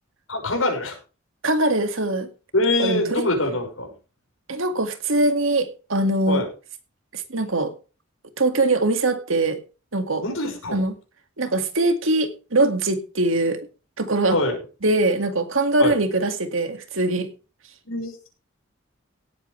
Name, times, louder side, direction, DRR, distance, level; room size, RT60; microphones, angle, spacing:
voice 1, 0.3-1.0 2.5-3.9 6.3-6.5 10.2-10.8 14.3-14.6 15.8-16.0 17.9-18.2, left 2 dB, 75° left, 4 dB, 5.8 m, -24 dB
voice 2, 1.4-2.3 2.8-3.3 4.5-6.4 7.1-7.7 8.4-9.6 9.9-10.2 10.7-10.9 11.4-13.6 14.0-14.4 14.8-17.3, right 2 dB, 70° right, 8 dB, 2.1 m, -22 dB
18.0 x 8.9 x 3.3 m, 0.33 s
head